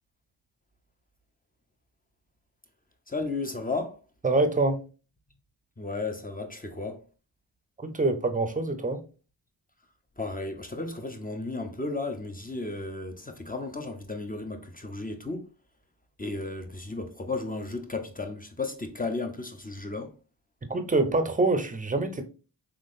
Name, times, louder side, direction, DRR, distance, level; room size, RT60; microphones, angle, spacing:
voice 1, 3.1-4.0 5.8-7.0 10.2-15.5 16.2-20.1, left 3 dB, 20° left, 0.7 m, -34 dB
voice 2, 4.2-4.8 7.8-9.0 20.7-22.2, right 2 dB, 20° right, 0.7 m, -25 dB
3.8 x 3.0 x 2.6 m
cardioid pair, 45°, 43 cm